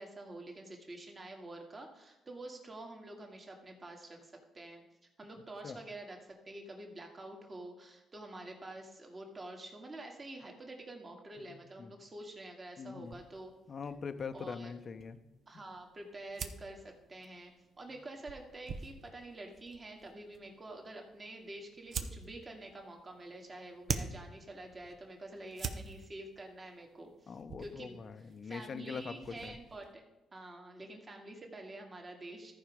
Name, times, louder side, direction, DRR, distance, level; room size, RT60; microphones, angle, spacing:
voice 1, 0.0-4.8 5.2-13.5 14.3-14.7 15.5-28.0 28.4-30.0 30.3-32.5, right 2 dB, 30° right, 2 dB, 2.0 m, -48 dB
voice 2, 11.5-12.0 12.8-13.2 13.7-15.2 27.3-29.6, left 5 dB, 45° left, 10 dB, 0.8 m, -43 dB
sound 1, 13.0-29.9, right 5 dB, 55° right, 0.8 m, -46 dB
14.0 x 4.9 x 5.1 m, 1.0 s
cardioid pair, 90°, 0 cm